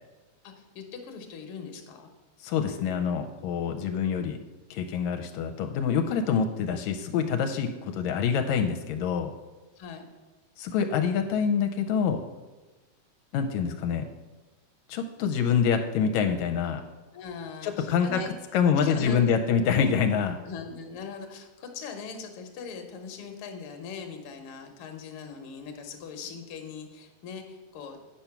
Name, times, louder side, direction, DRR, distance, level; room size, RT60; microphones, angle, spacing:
voice 1, 0.4-2.1 9.7-10.1 17.1-18.3 18.8-19.4 20.4-28.0, left 5 dB, 60° left, 5 dB, 1.6 m, -40 dB
voice 2, 2.4-4.4 4.7-9.3 10.6-12.2 13.3-14.1 14.9-16.8 17.6-18.2 18.5-20.4, left 7 dB, 85° left, 5 dB, 1.9 m, -26 dB
8.8 x 5.7 x 5.9 m, 1.2 s
omnidirectional pair, 3.3 m